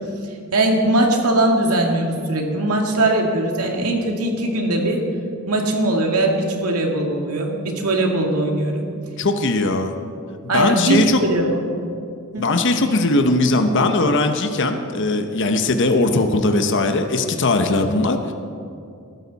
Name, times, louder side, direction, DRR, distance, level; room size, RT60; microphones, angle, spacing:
voice 1, 0.5-5.0 5.5-8.9 10.5-11.9 12.3-12.5, right 1 dB, 90° right, 1 dB, 2.2 m, -20 dB
voice 2, 9.2-9.9 10.5-11.2 12.4-18.3, left 2 dB, 55° left, 6 dB, 0.9 m, -19 dB
20.5 x 13.0 x 4.2 m, 2.4 s
head